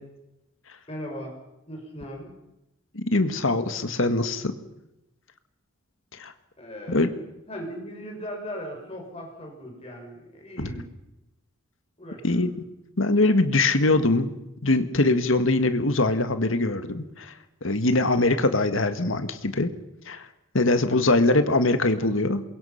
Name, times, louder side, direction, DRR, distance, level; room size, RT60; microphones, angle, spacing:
voice 1, 0.9-1.4 1.7-2.4 6.6-7.1 7.4-10.9 12.0-12.4, equal, 30° left, 1 dB, 6.2 m, -38 dB
voice 2, 2.9-4.5 6.2-6.3 6.9-7.1 10.6-10.7 12.2-12.5 13.0-14.3 14.6-17.3 17.6-19.7 20.1-20.2 20.5-22.4, left 2 dB, 70° left, 9 dB, 1.8 m, -22 dB
27.5 x 22.5 x 5.8 m, 0.89 s
head